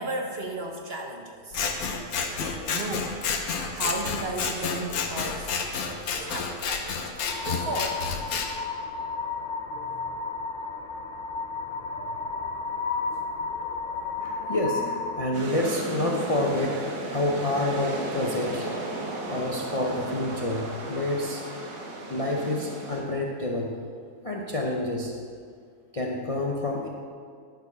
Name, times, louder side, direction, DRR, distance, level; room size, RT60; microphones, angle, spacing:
voice 1, 0.0-1.6 2.3-3.1 3.5-5.5 6.1-7.0 7.4-8.0 11.9-12.4, right 2 dB, 50° right, 2 dB, 0.9 m, -34 dB
Scissors, 1.5-8.5, left 5 dB, 70° left, 1.3 m, -30 dB
sound 1, 7.3-15.3, left 4 dB, 85° left, 0.4 m, -33 dB
voice 2, 14.2-18.7 19.3-21.4 22.1-23.7 24.2-25.1 25.9-26.9, left 1 dB, 35° left, -1 dB, 0.5 m, -28 dB
sound 2, 15.3-23.0, right 2 dB, 85° right, 1.9 m, -34 dB
10.5 x 6.6 x 5.3 m, 2.1 s
omnidirectional pair, 1.7 m